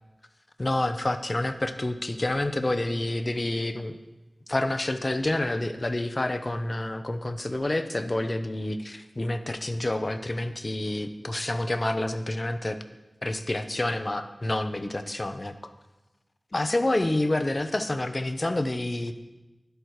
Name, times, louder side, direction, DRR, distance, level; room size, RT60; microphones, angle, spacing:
voice 1, 0.6-4.0 4.5-12.8 13.2-15.5 16.5-19.1, left 1 dB, 35° left, 8 dB, 0.7 m, -28 dB
10.5 x 8.0 x 4.8 m, 1.1 s
wide cardioid pair, 55°, 0 cm